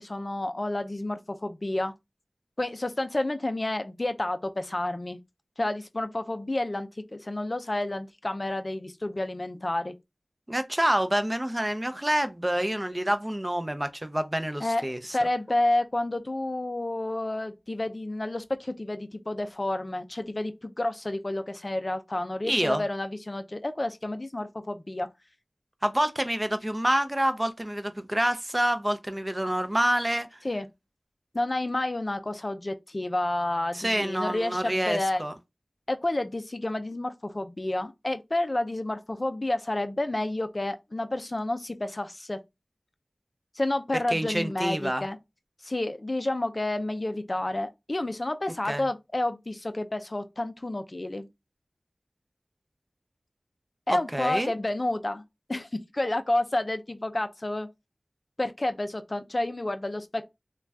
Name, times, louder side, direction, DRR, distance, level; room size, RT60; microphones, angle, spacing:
voice 1, 0.0-1.9 2.6-5.2 5.6-9.9 14.6-14.8 15.1-25.1 30.4-30.7 31.3-35.2 35.9-42.4 43.6-45.2 45.6-51.3 53.9-55.2 55.5-55.7 55.9-57.7 58.4-60.3, left 1 dB, 45° left, 0.4 m, -30 dB
voice 2, 10.5-15.2 22.4-22.8 25.8-30.4 33.7-35.3 44.1-45.0 48.7-48.9 53.9-54.5, right 1 dB, 20° right, 0.4 m, -27 dB
2.5 x 2.2 x 3.2 m
wide cardioid pair, 50°, 0 cm